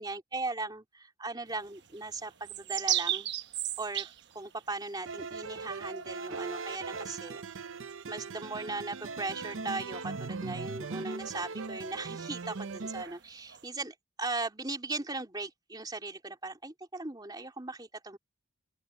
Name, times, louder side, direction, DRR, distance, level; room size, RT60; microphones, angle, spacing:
voice 1, 0.0-3.3 3.8-7.4 8.1-18.2, right 3 dB, 20° right, 3.0 m, -38 dB
sound 1, 1.5-13.6, right 12 dB, 55° right, 1.1 m, -39 dB
sound 2, 5.1-13.1, right 4 dB, 80° right, 0.7 m, -40 dB
open air
head